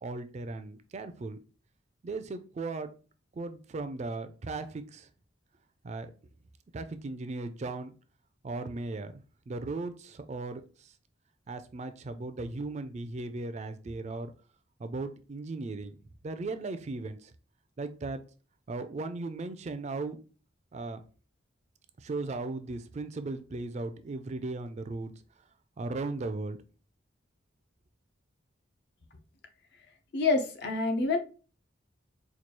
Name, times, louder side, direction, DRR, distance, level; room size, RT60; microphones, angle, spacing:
voice 1, 0.0-1.4 2.0-2.9 3.3-5.1 5.8-6.1 6.7-7.9 8.4-10.9 11.5-14.3 14.8-16.0 16.2-17.3 17.8-18.2 18.7-20.2 20.7-21.0 22.0-25.1 25.8-26.6, right 3 dB, 35° right, 10 dB, 0.3 m, -37 dB
voice 2, 30.1-31.2, left 3 dB, 60° left, 6 dB, 0.6 m, -27 dB
4.5 x 2.3 x 2.9 m, 0.36 s
head